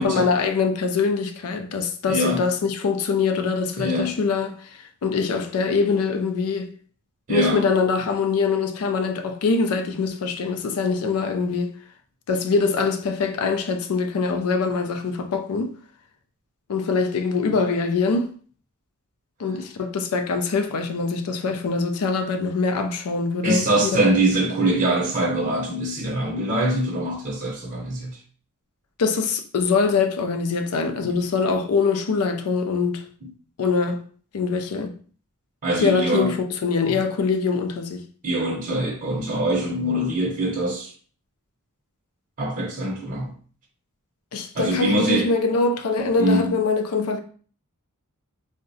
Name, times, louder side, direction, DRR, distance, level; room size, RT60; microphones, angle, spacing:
voice 1, 0.0-6.7 7.3-11.7 12.3-15.8 16.7-18.3 19.4-23.9 29.0-33.1 33.6-34.0 34.3-35.0 35.8-36.4 36.6-38.1 44.3-47.2, left 4 dB, 75° left, 0.4 m, -23 dB
voice 2, 2.1-2.4 3.8-4.1 7.3-7.6 23.4-28.2 31.0-31.2 35.6-36.3 36.9-37.0 38.2-40.9 42.4-43.3 44.5-45.3 46.2-46.6, right 1 dB, 40° right, 0.6 m, -23 dB
3.6 x 2.1 x 2.6 m
head